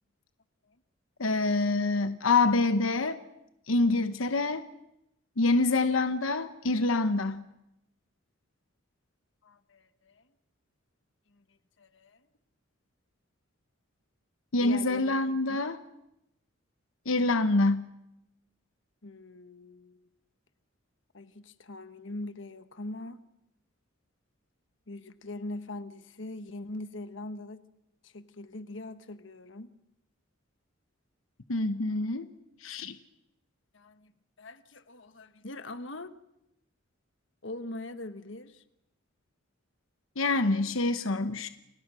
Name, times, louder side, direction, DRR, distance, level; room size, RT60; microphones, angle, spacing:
voice 1, 1.2-3.2 3.7-4.7 5.4-7.4 14.5-15.8 17.1-17.9 31.5-32.3 32.6-33.0 40.2-41.5, left 3 dB, 85° left, 1.0 m, -26 dB
voice 2, 9.4-10.2 11.3-11.4 11.8-12.2 14.6-15.6 19.0-20.1 21.1-23.2 24.9-27.6 28.0-29.7 33.7-34.1 34.4-36.1 37.4-38.6, left 2 dB, 65° left, 1.3 m, -42 dB
30.0 x 24.5 x 6.3 m
head